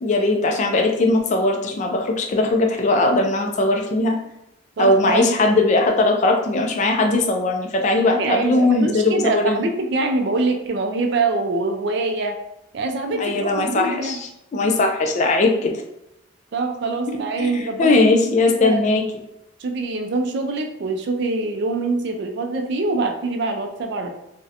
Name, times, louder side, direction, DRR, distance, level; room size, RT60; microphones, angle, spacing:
voice 1, 0.0-4.2 4.8-9.6 13.1-15.7 17.1-19.0, left 2 dB, 35° left, 2 dB, 0.3 m, -19 dB
voice 2, 4.8-5.3 8.2-12.4 12.7-14.2 16.5-17.9 18.2-18.8 19.6-24.1, right 3 dB, 55° right, 4 dB, 0.3 m, -24 dB
2.5 x 2.1 x 2.7 m, 0.84 s
head